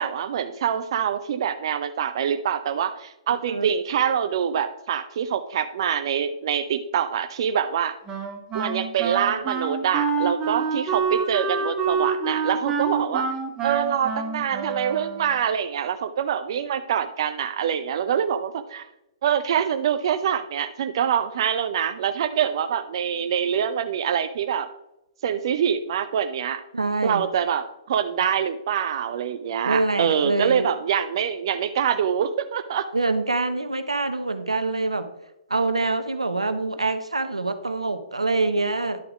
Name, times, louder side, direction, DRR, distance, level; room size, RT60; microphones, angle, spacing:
voice 1, 0.0-8.0 8.5-13.3 13.6-18.9 19.2-24.7 25.2-26.6 27.0-32.9, right 8 dB, 55° right, 9 dB, 0.5 m, -25 dB
Wind instrument woodwind instrument, 8.1-15.5, right 5 dB, 20° right, 1.6 m, -27 dB
voice 2, 26.7-27.2 29.6-30.7 32.9-35.1 35.5-39.0, right 3 dB, 90° right, 9 dB, 0.9 m, -25 dB
11.0 x 4.9 x 4.9 m, 0.91 s
figure-of-eight pair, 120°, 3 cm